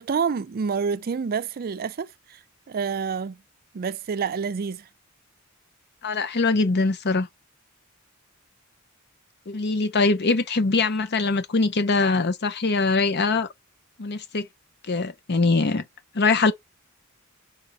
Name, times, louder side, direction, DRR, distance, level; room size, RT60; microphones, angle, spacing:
voice 1, 0.0-2.4 2.7-3.4 3.7-4.9, right 6 dB, 45° right, 0.4 m, -28 dB
voice 2, 6.0-7.3 9.5-13.5 14.0-14.5 14.9-15.8 16.1-16.5, left 3 dB, 50° left, 0.8 m, -22 dB
5.4 x 4.2 x 5.2 m
head